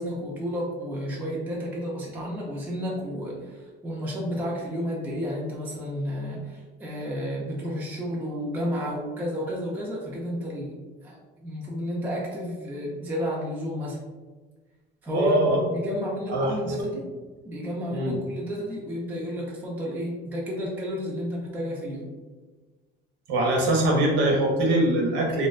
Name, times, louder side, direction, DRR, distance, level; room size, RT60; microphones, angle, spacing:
voice 1, 0.0-10.7 11.0-14.0 15.0-17.1 17.4-22.1, equal, 10° right, -3 dB, 0.3 m, -31 dB
voice 2, 15.1-15.6 16.3-16.5 17.9-18.1 23.3-25.5, right 1 dB, 65° right, -1 dB, 0.7 m, -22 dB
2.5 x 2.1 x 2.3 m, 1.3 s
cardioid pair, 155°, 20 cm